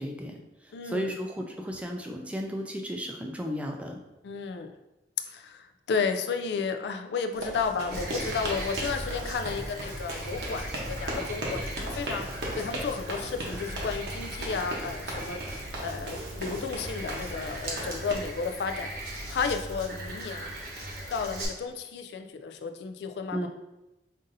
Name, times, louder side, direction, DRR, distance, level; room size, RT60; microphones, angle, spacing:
voice 1, 0.0-4.0 23.3-23.5, equal, 5° right, 2 dB, 0.3 m, -34 dB
voice 2, 0.7-1.2 4.2-4.7 5.3-12.3 12.6-15.4 15.8-18.9 19.3-20.6 21.1-23.5, left 5 dB, 75° left, 7 dB, 0.3 m, -32 dB
sound 1, 7.3-18.1, right 1 dB, 85° right, 0.9 m, -37 dB
Frog, 7.9-21.5, right 1 dB, 55° right, 0.9 m, -39 dB
5.2 x 2.6 x 2.6 m, 0.98 s
head